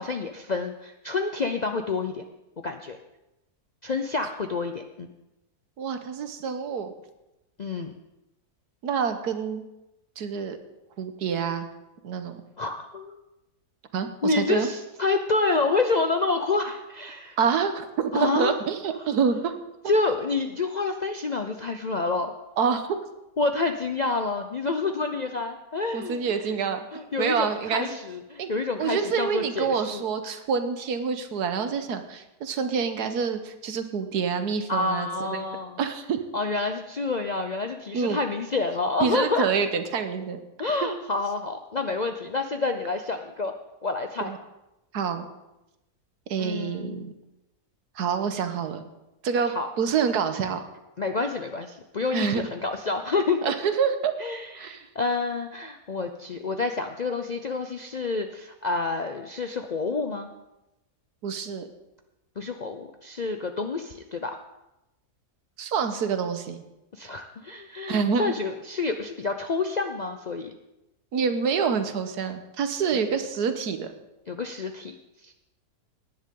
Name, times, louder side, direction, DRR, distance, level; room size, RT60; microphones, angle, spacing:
voice 1, 0.0-2.2 2.6-3.0 3.8-5.1 7.6-7.9 12.6-13.2 14.2-17.4 18.1-18.6 19.9-22.3 23.4-26.5 26.9-30.4 34.7-35.8 36.3-39.5 40.6-43.5 43.8-44.3 46.4-47.0 49.5-49.7 51.0-53.4 54.2-60.3 62.4-64.4 66.9-70.5 72.9-73.1 74.3-74.9 75.2-75.3, left 3 dB, 60° left, 5 dB, 0.4 m, -28 dB
voice 2, 5.8-6.9 8.8-9.6 10.2-10.6 11.0-11.7 12.0-12.4 13.9-14.7 17.4-19.5 22.6-23.0 25.9-26.9 27.2-28.0 28.4-28.5 28.8-35.4 35.8-36.2 37.9-38.2 39.0-40.4 44.2-44.4 44.9-45.3 46.3-47.1 47.9-48.8 49.2-50.6 52.1-52.5 53.4-54.1 54.5-54.8 61.2-61.6 65.6-66.6 67.9-68.4 71.1-73.9, right 6 dB, 90° right, 8 dB, 1.6 m, -27 dB
18.0 x 10.5 x 3.8 m, 0.96 s
omnidirectional pair, 1.6 m